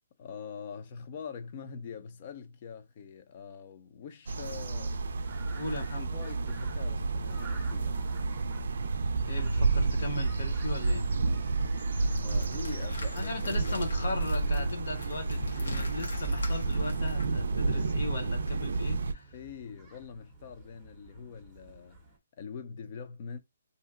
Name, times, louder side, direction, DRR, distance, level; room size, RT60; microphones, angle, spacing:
voice 1, 0.2-5.0 6.1-8.1 12.2-13.9 19.3-22.0 22.3-23.4, left 6 dB, 35° left, 0.5 m, -44 dB
sound 1, 4.3-19.1, right 3 dB, 70° right, 0.4 m, -30 dB
sound 2, 4.7-22.2, right 2 dB, 5° right, 0.7 m, -53 dB
voice 2, 5.5-6.1 9.3-11.1 13.1-19.3, left 2 dB, 60° left, 1.0 m, -38 dB
sound 3, 12.0-17.3, left 1 dB, 85° left, 0.9 m, -41 dB
2.7 x 2.1 x 3.6 m
hypercardioid pair, 165°, 0 cm